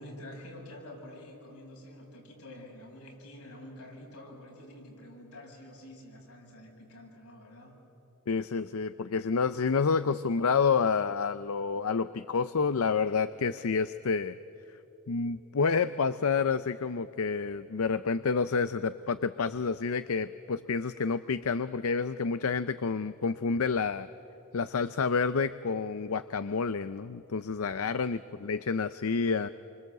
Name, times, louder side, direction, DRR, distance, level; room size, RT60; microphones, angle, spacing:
voice 1, 0.0-7.7, left 1 dB, 90° left, -1 dB, 7.0 m, -48 dB
voice 2, 8.3-14.4 15.1-24.1 24.5-29.5, left 5 dB, 70° left, 13 dB, 0.6 m, -29 dB
28.0 x 25.5 x 7.9 m, 2.9 s
head